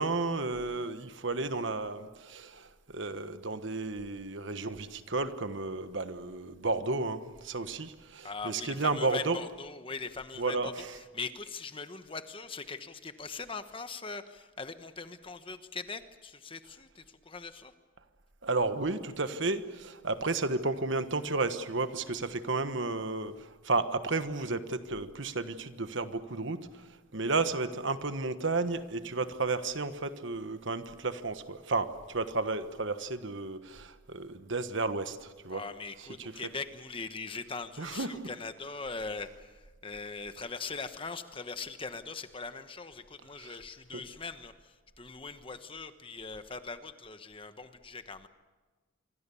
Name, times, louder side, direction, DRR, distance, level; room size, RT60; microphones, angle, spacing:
voice 1, 0.0-9.4 10.4-11.0 18.4-26.6 27.1-35.6 36.2-36.3 37.8-38.3 43.4-43.5 43.9-44.0, right 3 dB, 65° right, 10 dB, 1.3 m, -32 dB
voice 2, 8.2-10.8 11.1-17.7 35.5-48.3, left 4 dB, 25° left, 9 dB, 1.1 m, -41 dB
26.5 x 24.5 x 7.1 m, 1.3 s
head